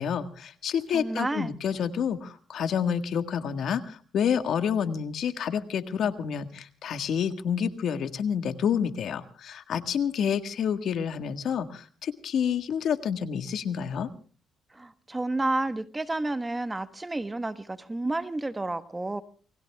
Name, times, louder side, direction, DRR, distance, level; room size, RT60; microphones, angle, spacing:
voice 1, 0.0-14.1, left 7 dB, 70° left, 9 dB, 1.6 m, -29 dB
voice 2, 0.9-1.5 14.7-19.2, right 2 dB, 15° right, 11 dB, 1.3 m, -30 dB
29.0 x 20.0 x 2.4 m, 0.41 s
cardioid pair, 90°, 0 cm